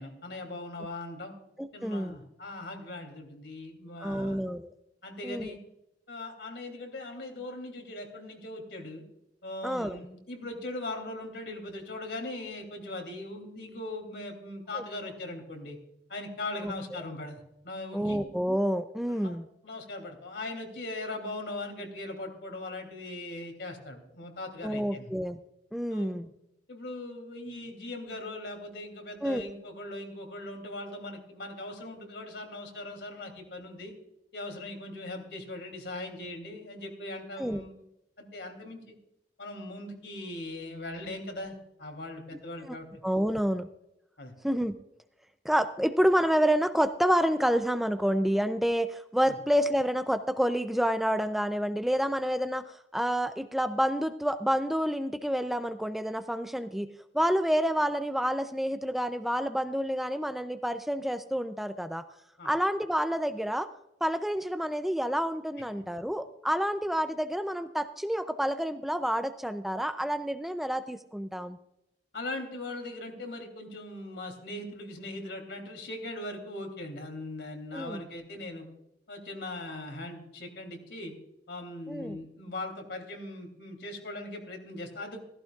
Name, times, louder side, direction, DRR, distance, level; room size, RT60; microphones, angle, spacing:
voice 1, 0.0-1.3 1.7-4.4 5.0-5.6 6.1-9.0 9.4-15.8 16.1-18.2 19.1-19.4 19.6-25.1 25.9-26.2 26.7-33.9 34.3-37.8 38.2-38.9 39.4-43.0 44.2-44.3 49.3-49.4 62.4-62.5 72.1-78.7 79.1-81.1 81.5-85.2, left 2 dB, 75° left, 4 dB, 2.9 m, -40 dB
voice 2, 1.6-2.2 4.0-4.7 5.2-5.5 9.6-10.0 14.7-14.8 16.6-17.0 17.9-19.4 24.6-25.4 25.7-26.3 29.2-29.4 37.4-37.6 42.7-42.8 43.0-43.7 44.4-44.8 45.4-56.9 57.1-62.0 62.4-63.7 64.0-71.6 77.7-78.0 81.9-82.2, equal, ahead, 10 dB, 0.4 m, -28 dB
15.5 x 15.0 x 2.4 m, 0.84 s
head